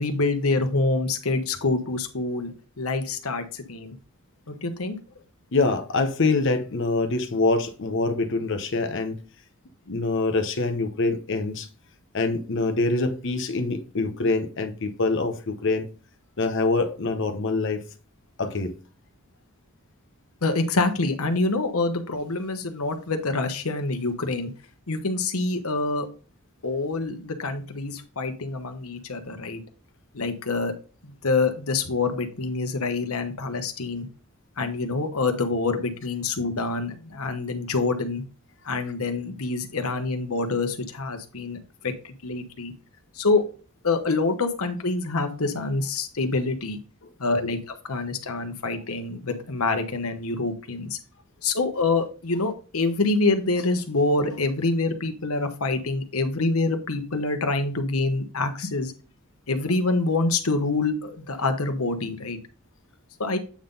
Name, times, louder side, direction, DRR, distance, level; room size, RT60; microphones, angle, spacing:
voice 1, 0.0-2.5 2.8-4.0 4.5-5.0 20.4-24.5 24.9-26.1 26.6-29.6 30.1-30.7 31.0-34.1 34.6-38.2 38.6-41.6 41.8-42.7 43.1-43.4 43.8-46.8 47.2-51.0 51.4-58.9 59.5-62.4 63.2-63.4, left 3 dB, 80° left, 1.1 m, -26 dB
voice 2, 5.5-9.2 9.9-11.7 12.1-15.9 16.4-17.8 18.4-18.7, left 3 dB, 60° left, 0.8 m, -25 dB
8.5 x 3.8 x 3.9 m
head